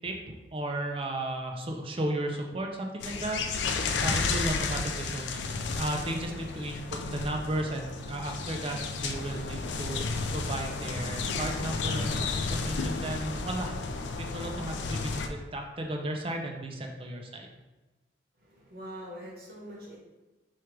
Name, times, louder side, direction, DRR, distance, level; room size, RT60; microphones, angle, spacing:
voice 1, 0.5-5.4 5.8-17.5, right 1 dB, 30° right, 2 dB, 0.5 m, -34 dB
sound 1, 3.0-15.3, left 4 dB, 75° left, 0.4 m, -32 dB
voice 2, 18.4-20.0, equal, 55° right, -4 dB, 1.2 m, -43 dB
4.5 x 2.4 x 4.6 m, 1.1 s
head